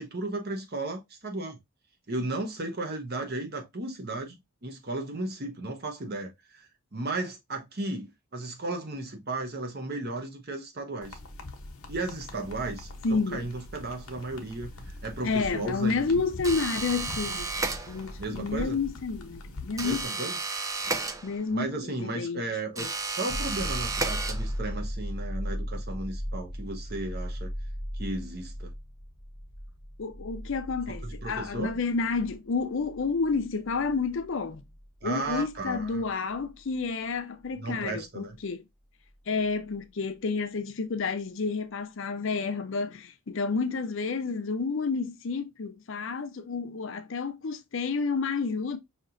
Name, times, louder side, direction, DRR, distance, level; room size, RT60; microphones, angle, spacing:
voice 1, 0.0-1.6 2.1-11.2 11.9-16.0 18.2-18.8 19.8-20.4 21.5-27.5 27.9-28.7 30.9-31.8 35.0-36.1 37.6-38.4, right 2 dB, 45° right, 0.9 m, -35 dB
texting button presses, 11.0-20.0, left 1 dB, 85° left, 0.9 m, -42 dB
voice 2, 13.0-13.5 15.2-17.5 17.9-20.3 21.2-22.4 22.8-22.9 30.0-34.6 35.0-38.6 39.3-48.8, left 4 dB, 60° left, 0.5 m, -30 dB
sound 1, 16.4-18.3 19.8-21.7 22.7-24.8, right 3 dB, 15° right, 0.3 m, -33 dB
sound 2, 23.3-36.8 39.5-39.6, equal, 15° left, 0.8 m, -37 dB
5.2 x 2.9 x 2.5 m
head